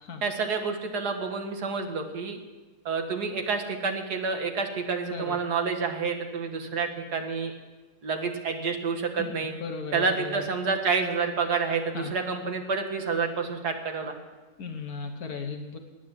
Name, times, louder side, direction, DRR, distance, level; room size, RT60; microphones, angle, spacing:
voice 1, 0.2-2.4 2.9-7.5 8.0-9.5 9.9-14.1, right 5 dB, 75° right, 4 dB, 2.2 m, -29 dB
voice 2, 9.6-10.4 11.9-12.1 14.6-15.8, left 4 dB, 70° left, 4 dB, 1.6 m, -36 dB
19.0 x 9.4 x 7.4 m, 1.3 s
omnidirectional pair, 1.7 m